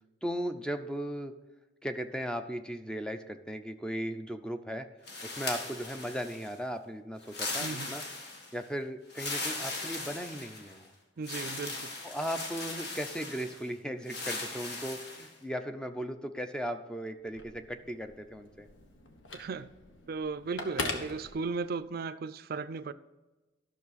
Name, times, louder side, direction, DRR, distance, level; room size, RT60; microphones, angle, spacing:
voice 1, 0.2-1.3 1.8-4.9 5.2-8.0 8.5-10.9 12.0-18.7, equal, 5° left, 0.5 m, -37 dB
sound 1, 5.1-6.6 7.2-8.6 9.1-10.8 11.2-13.6 14.1-15.3, left 3 dB, 55° left, 1.6 m, -38 dB
voice 2, 7.6-7.9 11.2-11.9 19.3-19.7 20.1-22.9, right 4 dB, 50° right, 0.4 m, -36 dB
Telephone, 17.2-22.0, left 3 dB, 75° left, 1.3 m, -41 dB
12.0 x 6.3 x 4.1 m
head